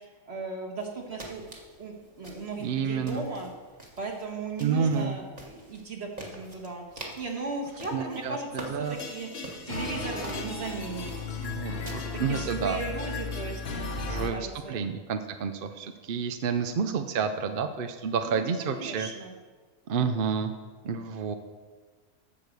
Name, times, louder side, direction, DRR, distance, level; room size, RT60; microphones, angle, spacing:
voice 1, 0.3-1.4 1.8-3.5 4.0-9.3 9.7-11.1 11.8-14.8 18.2-19.4, right 3 dB, 45° right, 1 dB, 1.9 m, -37 dB
sound 1, 0.8-11.9, right 1 dB, 25° right, 1.6 m, -47 dB
voice 2, 2.6-3.2 4.6-5.2 7.9-9.0 11.4-12.8 13.9-19.1 19.9-20.5 20.8-21.3, right 6 dB, 60° right, 7 dB, 0.5 m, -30 dB
sound 2, 8.8-14.3, left 4 dB, 45° left, 1.1 m, -35 dB
14.5 x 4.8 x 6.7 m, 1.4 s
omnidirectional pair, 1.6 m